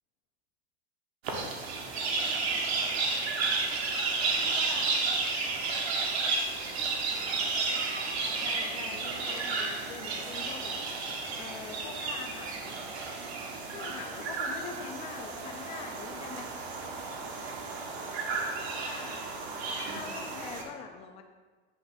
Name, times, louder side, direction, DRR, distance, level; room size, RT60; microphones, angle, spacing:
sound 1, 1.2-20.6, right 3 dB, 80° right, 1.6 m, -32 dB
voice 1, 4.4-5.1 8.4-10.8 11.4-12.8 13.7-16.5 18.7-19.3 19.8-21.2, left 7 dB, 20° left, 5 dB, 0.5 m, -44 dB
9.2 x 3.3 x 5.7 m, 1.4 s
supercardioid pair, 160°, 32 cm